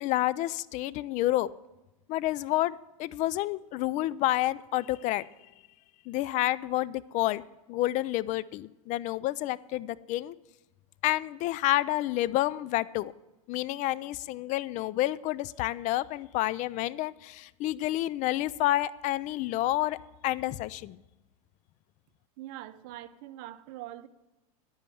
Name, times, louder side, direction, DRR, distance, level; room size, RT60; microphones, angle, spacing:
voice 1, 0.0-1.5 2.1-5.2 6.1-7.4 7.7-10.3 11.0-13.1 13.5-20.0 20.2-21.0, left 16 dB, 45° left, 19 dB, 0.4 m, -29 dB
voice 2, 22.4-24.1, right 14 dB, 55° right, 12 dB, 0.8 m, -43 dB
10.0 x 8.4 x 7.8 m, 1.0 s
hypercardioid pair, 110°, 18 cm